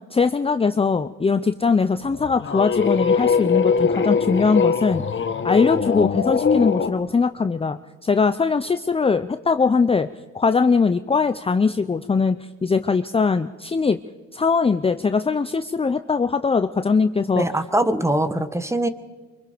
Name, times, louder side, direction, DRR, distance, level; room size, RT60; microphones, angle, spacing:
voice 1, 0.1-5.0 5.4-10.1 10.3-14.0 14.3-17.4, left 4 dB, 20° left, 10 dB, 0.6 m, -21 dB
sound 1, 2.1-6.9, left 6 dB, 40° left, 1.4 m, -21 dB
voice 2, 17.3-18.9, right 1 dB, 10° right, 11 dB, 1.5 m, -22 dB
25.0 x 24.0 x 5.2 m, 1.3 s
cardioid pair, 90°, 30 cm